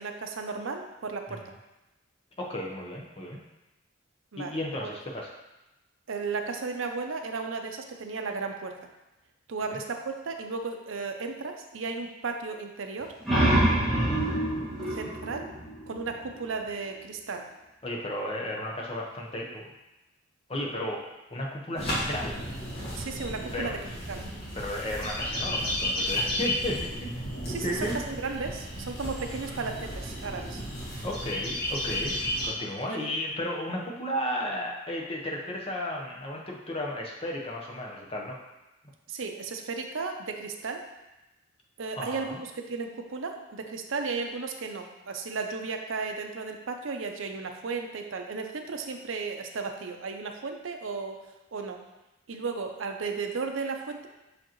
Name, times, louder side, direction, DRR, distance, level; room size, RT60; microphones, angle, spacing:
voice 1, 0.0-1.5 4.3-4.9 6.1-8.8 9.5-13.1 14.9-15.5 15.9-17.5 23.0-23.8 24.1-24.2 27.5-30.6 32.9-33.1 39.1-40.8 41.8-51.2 51.5-51.8 52.3-54.1, right 4 dB, 70° right, 4 dB, 0.6 m, -34 dB
voice 2, 2.4-3.4 4.4-5.3 9.7-9.8 13.8-14.1 17.8-19.6 20.5-21.0 21.3-22.4 23.5-23.7 24.5-26.9 27.6-28.0 31.0-32.2 32.4-38.4 42.0-42.4, left 1 dB, 30° left, -2 dB, 0.9 m, -34 dB
sound 1, 13.0-16.4, right 1 dB, ahead, 1.7 m, -26 dB
sound 2, 21.8-32.5, left 1 dB, 50° left, 2.1 m, -33 dB
6.4 x 5.0 x 3.0 m, 1.0 s
head